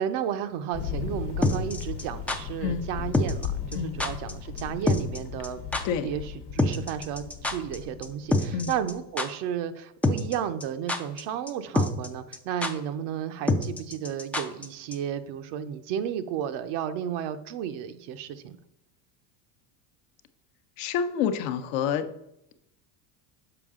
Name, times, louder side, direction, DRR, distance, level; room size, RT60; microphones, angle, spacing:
voice 1, 0.0-5.6 6.0-18.6, right 9 dB, 60° right, 10 dB, 0.7 m, -33 dB
Thunder, 0.7-9.0, left 7 dB, 85° left, 1.1 m, -37 dB
sound 1, 1.4-2.4 3.1-3.5 3.7-3.8 4.0-4.3 4.6-4.7 4.9-5.2 5.4-5.5 5.7-5.8 6.6-7.8 8.0-8.1 8.3-8.9 9.2-9.3 10.0-10.4 10.6-11.2 11.5-11.6 11.8-12.1 12.3-12.4 12.6-12.7 13.5-14.7 14.9-15.0, left 2 dB, 5° left, 0.3 m, -25 dB
voice 2, 20.8-22.1, left 7 dB, 65° left, 9 dB, 0.8 m, -28 dB
6.9 x 4.6 x 3.6 m, 0.81 s
supercardioid pair, 100°, 47 cm